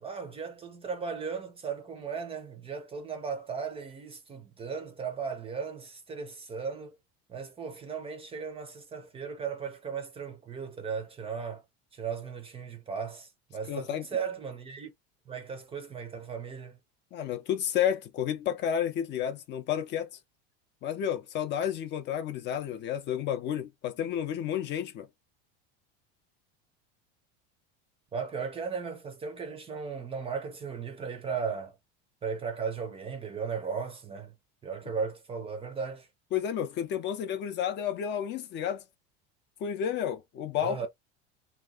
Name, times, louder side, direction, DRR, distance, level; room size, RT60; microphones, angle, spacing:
voice 1, 0.0-7.0 7.3-11.6 11.9-14.9 15.3-16.8 28.1-31.7 32.2-34.3 34.6-36.1 40.6-40.9, right 6 dB, 20° right, 0.5 m, -36 dB
voice 2, 13.7-14.1 17.1-20.1 20.8-25.1 36.3-38.8 39.6-40.8, left 9 dB, 35° left, 0.5 m, -31 dB
2.9 x 2.2 x 3.7 m
supercardioid pair, 145°, 32 cm